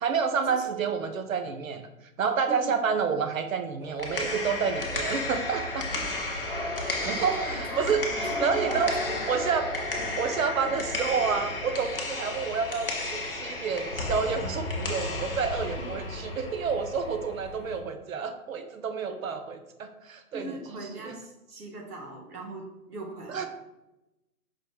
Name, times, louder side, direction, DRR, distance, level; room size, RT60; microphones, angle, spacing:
voice 1, 0.0-1.9 2.2-5.9 7.0-9.0 9.3-9.7 10.2-21.1 23.3-23.5, right 6 dB, 65° right, 8 dB, 0.5 m, -29 dB
sound 1, 3.8-17.8, left 2 dB, 40° left, 0.4 m, -33 dB
voice 2, 6.8-9.2 10.0-10.1 10.6-10.7 19.1-19.2 20.3-23.5, right 2 dB, 85° right, 0 dB, 1.4 m, -41 dB
4.9 x 2.3 x 3.3 m, 0.94 s
hypercardioid pair, 180°, 44 cm